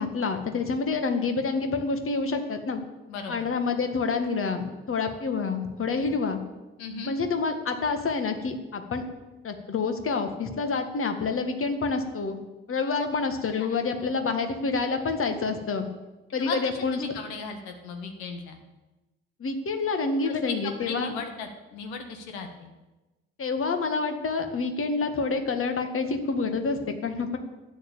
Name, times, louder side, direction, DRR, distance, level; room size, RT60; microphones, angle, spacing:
voice 1, 0.0-2.8 3.3-6.4 7.0-9.0 9.4-12.4 12.7-15.9 16.3-17.0 19.4-21.1 23.4-27.4, left 4 dB, 40° left, 6 dB, 1.9 m, -28 dB
voice 2, 3.1-3.5 6.8-7.1 13.0-13.1 13.6-13.7 14.0-14.1 16.4-16.6 16.9-18.6 20.2-22.7, left 5 dB, 75° left, 5 dB, 1.7 m, -36 dB
11.5 x 9.4 x 7.0 m, 1.1 s
figure-of-eight pair, 45°, 33 cm